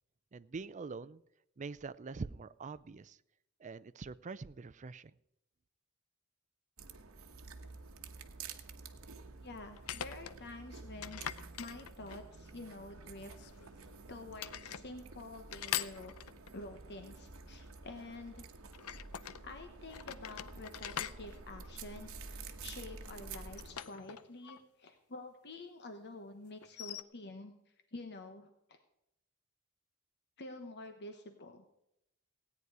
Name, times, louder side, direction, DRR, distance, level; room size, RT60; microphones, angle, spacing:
voice 1, 0.3-1.2 1.6-3.2 3.6-5.1, right 4 dB, 35° right, 16 dB, 0.4 m, -44 dB
sound 1, 6.8-23.7, right 4 dB, 70° right, 1.1 m, -50 dB
sound 2, 7.6-7.7 9.7-10.4 11.0-12.4 13.3-14.0 14.4-14.9 15.5-16.6 18.7-19.4 19.9-22.3 23.3-24.6 24.9-25.0 26.6-27.0, left 10 dB, 85° left, 0.6 m, -43 dB
voice 2, 9.4-11.2 11.6-13.5 14.1-16.1 16.5-18.5 19.4-28.8 30.4-31.6, left 2 dB, 50° left, 7 dB, 1.1 m, -48 dB
16.5 x 9.5 x 4.8 m, 0.82 s
head